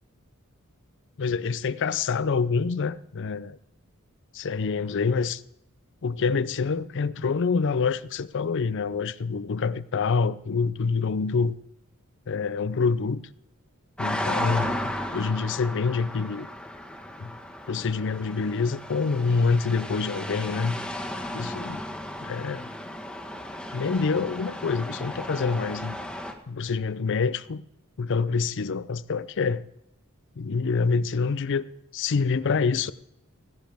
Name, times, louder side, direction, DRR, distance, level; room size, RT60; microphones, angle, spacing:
voice 1, 1.2-3.6 4.3-5.4 6.0-11.6 12.3-13.2 14.0-16.5 17.2-17.4 17.7-20.8 21.3-21.8 22.2-22.7 23.7-26.0 26.5-27.6 28.0-29.6 30.4-31.6 31.9-32.9, left 5 dB, 60° left, 0.5 m, -26 dB
sound 1, 14.0-26.3, left 1 dB, 5° left, 1.4 m, -34 dB
16.0 x 15.5 x 3.5 m
head